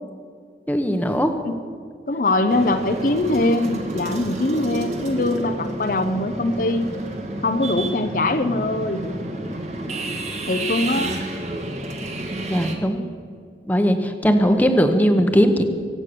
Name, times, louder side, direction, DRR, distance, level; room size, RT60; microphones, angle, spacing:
voice 1, 0.7-1.3 12.5-13.0 13.7-15.6, equal, 10° left, 6 dB, 1.0 m, -19 dB
voice 2, 2.1-6.9 7.4-9.0 10.5-11.1 14.4-14.7, left 2 dB, 50° left, 8 dB, 0.8 m, -22 dB
sound 1, 2.5-12.7, right 1 dB, 40° right, 1.9 m, -30 dB
24.5 x 8.5 x 6.8 m, 2.1 s
head